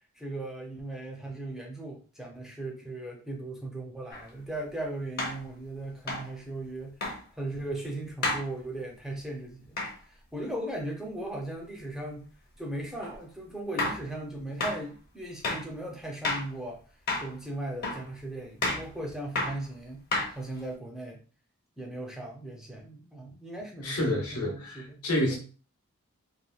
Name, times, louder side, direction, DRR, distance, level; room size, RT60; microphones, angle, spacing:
voice 1, 0.2-6.9 7.4-12.3 12.6-16.8 17.2-20.0 20.3-21.2 21.8-25.4, right 1 dB, ahead, -1 dB, 0.5 m, -38 dB
sound 1, 4.1-4.2 5.2-5.4 6.1-6.3 7.0-7.2 8.2-8.5 9.8-10.0 13.0-13.2 13.8-14.0 14.6-14.8 15.4-15.7 16.2-16.5 17.1-17.3 17.8-18.1 18.6-18.9 19.4-19.6 20.1-20.6, left 2 dB, 45° left, 0.8 m, -30 dB
voice 2, 23.8-25.4, left 1 dB, 85° left, 1 dB, 0.9 m, -29 dB
3.3 x 2.2 x 2.3 m, 0.36 s
head